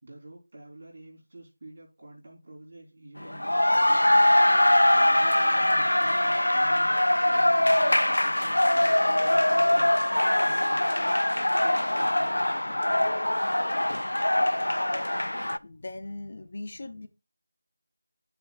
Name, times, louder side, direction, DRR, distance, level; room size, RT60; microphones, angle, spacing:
voice 1, 0.0-7.0 7.2-13.4, right 1 dB, 50° right, 3.7 m, -48 dB
sound 1, 3.2-15.6, left 1 dB, 90° left, 0.3 m, -23 dB
voice 2, 15.6-17.1, left 2 dB, 45° left, 0.6 m, -39 dB
8.0 x 6.8 x 2.4 m
figure-of-eight pair, 170°, 0 cm